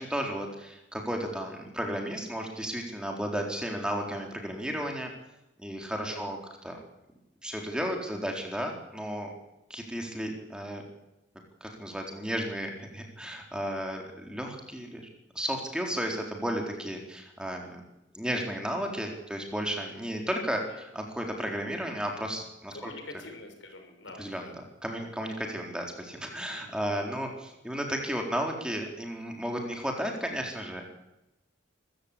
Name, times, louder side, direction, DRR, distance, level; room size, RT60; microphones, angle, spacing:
voice 1, 0.0-5.1 5.6-6.4 6.6-6.8 7.4-9.3 9.7-10.8 11.6-15.1 15.3-17.8 18.1-22.9 24.2-24.5 24.8-30.9, equal, 5° right, 2 dB, 4.1 m, -33 dB
voice 2, 22.7-24.5 26.3-26.7, left 2 dB, 90° left, 5 dB, 6.1 m, -46 dB
24.0 x 15.5 x 8.6 m, 0.91 s
head